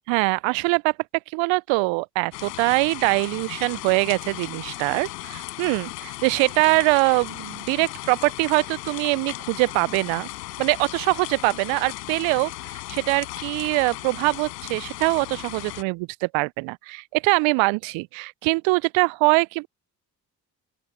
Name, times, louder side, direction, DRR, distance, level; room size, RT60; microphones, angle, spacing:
voice 1, 0.1-0.9 1.3-10.3 10.6-12.5 12.9-19.7, right 28 dB, 70° right, 0.9 m, -23 dB
sound 1, 2.3-15.8, left 20 dB, 80° left, 5.8 m, -36 dB
open air
figure-of-eight pair, 45°, 48 cm